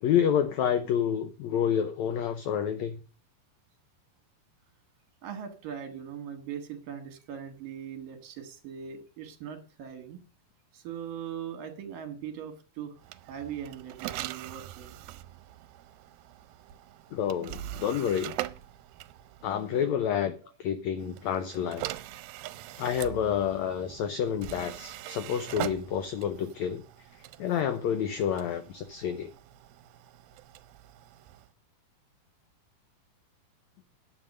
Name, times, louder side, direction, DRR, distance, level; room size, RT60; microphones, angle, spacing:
voice 1, 0.0-3.0 17.1-18.3 19.4-20.3 20.6-21.9 22.8-26.8 27.4-29.3, left 8 dB, 85° left, 10 dB, 1.6 m, -29 dB
voice 2, 5.2-10.2 10.7-12.9 13.3-15.0, right 8 dB, 70° right, 7 dB, 3.3 m, -40 dB
sound 1, 13.0-19.9 21.0-31.5, right 15 dB, 85° right, 2.5 m, -42 dB
10.0 x 7.3 x 6.5 m, 0.36 s
omnidirectional pair, 4.2 m